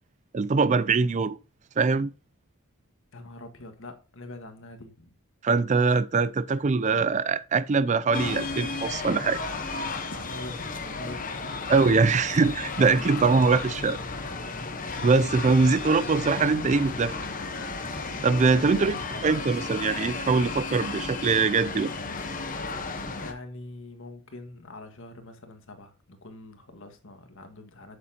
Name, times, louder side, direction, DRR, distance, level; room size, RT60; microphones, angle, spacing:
voice 1, 0.3-1.4 1.8-2.1 5.4-9.4 11.7-14.0 15.0-17.2 18.2-21.9, right 4 dB, 35° right, 0.4 m, -23 dB
voice 2, 3.1-5.1 10.1-11.5 15.5-15.8 18.5-18.9 23.2-28.0, left 2 dB, 60° left, 1.7 m, -43 dB
sound 1, 8.1-23.3, left 3 dB, 40° left, 1.1 m, -34 dB
8.5 x 8.2 x 2.9 m
head